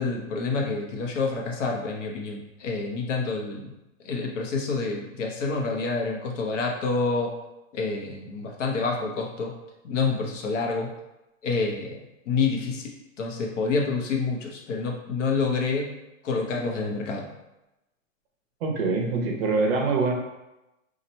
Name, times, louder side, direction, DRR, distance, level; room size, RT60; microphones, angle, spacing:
voice 1, 0.0-3.7 4.0-7.4 7.7-9.6 9.8-10.9 11.4-12.0 12.3-12.9 13.2-15.9 16.2-17.3, left 4 dB, 65° left, 0 dB, 0.9 m, -28 dB
voice 2, 18.6-20.1, right 3 dB, 45° right, 1 dB, 0.8 m, -24 dB
2.9 x 2.5 x 4.2 m, 0.95 s
hypercardioid pair, 160°, 39 cm